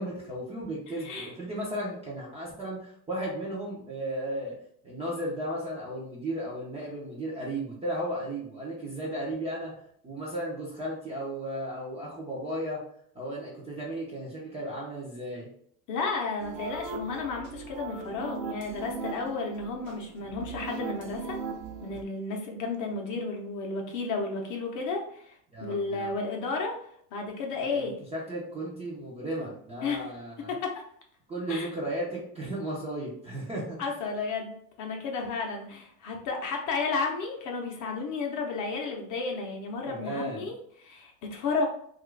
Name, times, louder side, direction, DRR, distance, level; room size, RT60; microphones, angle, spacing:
voice 1, 0.0-4.5 4.8-9.7 10.0-12.8 13.1-15.5 25.5-26.1 27.6-30.5 31.3-33.8 39.9-40.5, right 1 dB, 15° right, -6 dB, 0.4 m, -35 dB
voice 2, 1.0-1.3 15.9-21.4 21.8-25.3 25.6-26.8 27.1-27.9 29.8-30.1 30.5-30.8 31.5-31.7 33.8-41.7, left 4 dB, 40° left, 1 dB, 0.6 m, -32 dB
sound 1, 16.4-22.0, right 5 dB, 60° right, 0.7 m, -39 dB
2.8 x 2.4 x 3.1 m, 0.65 s
supercardioid pair, 140°, 49 cm